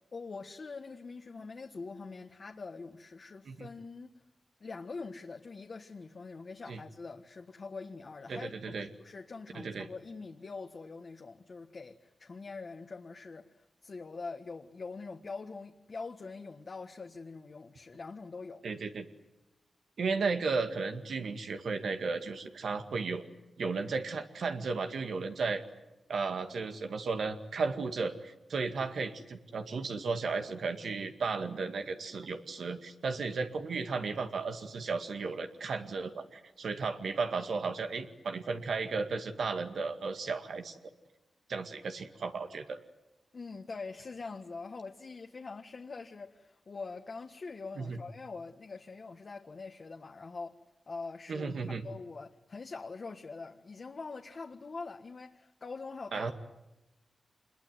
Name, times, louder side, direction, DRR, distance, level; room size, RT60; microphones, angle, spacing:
voice 1, 0.1-4.1 4.6-8.5 8.8-13.6 13.8-18.6 43.3-50.6 50.9-51.5 51.8-56.3, left 4 dB, 55° left, 3 dB, 1.5 m, -44 dB
voice 2, 8.3-8.9 9.5-9.9 18.6-19.1 20.0-23.2 23.6-25.6 26.1-40.8 41.5-42.8 47.8-48.0 51.3-51.9 56.1-56.3, right 4 dB, 80° right, 6 dB, 2.0 m, -34 dB
26.0 x 21.5 x 9.6 m, 0.97 s
cardioid pair, 80°, 0 cm